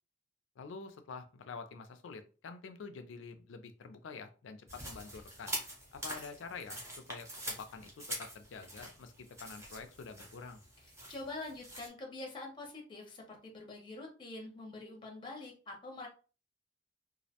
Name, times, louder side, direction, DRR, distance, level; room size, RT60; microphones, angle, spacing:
voice 1, 0.6-5.5 5.9-10.6, left 4 dB, 80° left, 9 dB, 0.4 m, -47 dB
sound 1, 4.7-11.9, right 1 dB, 15° right, 0.7 m, -45 dB
voice 2, 11.1-16.1, left 2 dB, 25° left, 1 dB, 0.6 m, -45 dB
2.5 x 2.0 x 2.7 m, 0.35 s
head